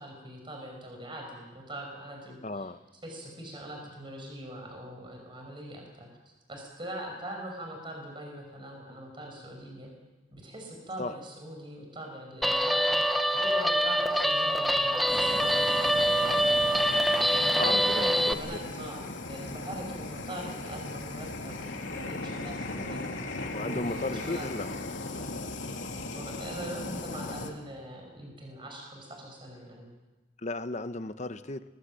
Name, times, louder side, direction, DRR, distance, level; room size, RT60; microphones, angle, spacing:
voice 1, 0.0-2.7 3.0-6.1 6.5-9.9 10.3-16.5 17.4-23.0 23.6-24.5 26.1-29.9, right 1 dB, 25° right, 2 dB, 5.8 m, -42 dB
voice 2, 2.4-2.8 11.0-11.1 17.6-18.6 23.5-25.0 30.4-31.6, left 2 dB, 40° left, 11 dB, 0.9 m, -35 dB
Guitar, 12.4-18.3, equal, ahead, 0.9 m, -25 dB
Fire, 15.1-27.5, left 2 dB, 85° left, 2.8 m, -38 dB
26.5 x 20.0 x 7.7 m, 1.1 s
head